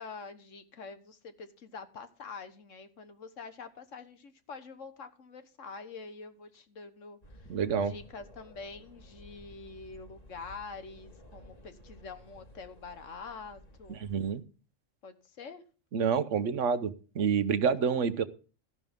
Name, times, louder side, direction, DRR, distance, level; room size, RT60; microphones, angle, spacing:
voice 1, 0.0-7.5 7.8-14.0 15.0-15.6, left 4 dB, 70° left, 9 dB, 1.6 m, -46 dB
sound 1, 7.2-14.3, equal, 30° left, 1.9 m, -54 dB
voice 2, 7.5-7.9 14.0-14.4 15.9-18.2, right 6 dB, 70° right, 13 dB, 1.2 m, -28 dB
14.0 x 11.0 x 3.6 m, 0.36 s
omnidirectional pair, 1.3 m